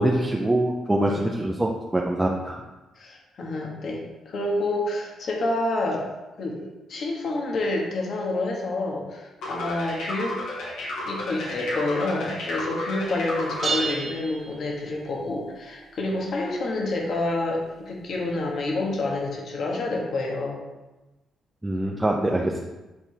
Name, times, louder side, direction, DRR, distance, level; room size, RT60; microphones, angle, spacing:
voice 1, 0.0-2.6 21.6-22.6, right 1 dB, 10° right, -1 dB, 0.7 m, -24 dB
voice 2, 3.0-6.1 6.4-10.4 11.0-20.6, left 2 dB, 60° left, -1 dB, 1.7 m, -28 dB
sound 1, 9.4-14.0, left 1 dB, 85° left, 2.2 m, -32 dB
sound 2, 13.6-15.2, right 4 dB, 45° right, 1.1 m, -31 dB
9.6 x 4.0 x 3.5 m, 1.1 s
cardioid pair, 90°, 0 cm